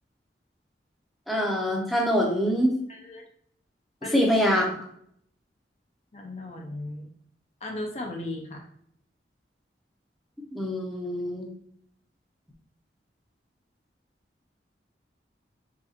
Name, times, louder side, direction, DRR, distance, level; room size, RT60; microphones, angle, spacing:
voice 1, 1.3-2.7 4.1-4.8 10.5-11.5, equal, ahead, -1 dB, 0.7 m, -24 dB
voice 2, 2.9-3.2 4.0-4.2 6.1-7.1 7.6-8.6, left 1 dB, 35° left, 1 dB, 0.5 m, -36 dB
4.8 x 3.4 x 2.9 m, 0.68 s
head